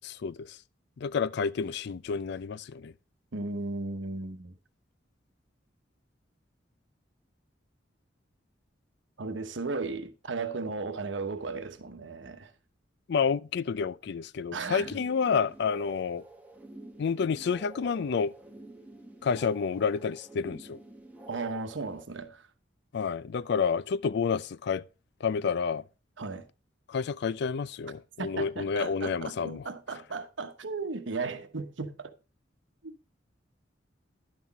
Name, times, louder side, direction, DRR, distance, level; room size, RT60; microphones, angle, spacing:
voice 1, 0.0-0.5 1.0-2.9 13.1-16.2 17.0-18.3 19.2-20.8 22.9-24.8 25.2-25.8 26.9-29.6, left 6 dB, 60° left, 0.4 m, -29 dB
voice 2, 3.3-4.6 9.2-12.5 14.5-14.9 21.3-22.5 26.2-26.5 28.2-32.1 32.8-33.0, right 3 dB, 75° right, 1.0 m, -35 dB
sound 1, 14.7-22.0, right 1 dB, 10° right, 1.0 m, -49 dB
11.0 x 6.0 x 4.1 m
head